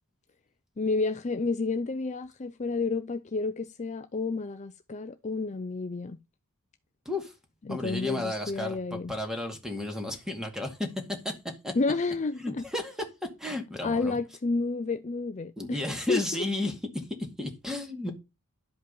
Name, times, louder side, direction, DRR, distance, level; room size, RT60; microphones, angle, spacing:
voice 1, 0.8-6.2 7.7-9.1 11.7-12.6 13.8-15.8 16.1-16.5, left 3 dB, 30° left, 0.5 m, -30 dB
voice 2, 7.7-11.4 11.6-11.7 12.4-13.0 13.4-14.2 15.6-18.1, left 2 dB, 5° right, 2.2 m, -33 dB
11.5 x 5.2 x 5.4 m
head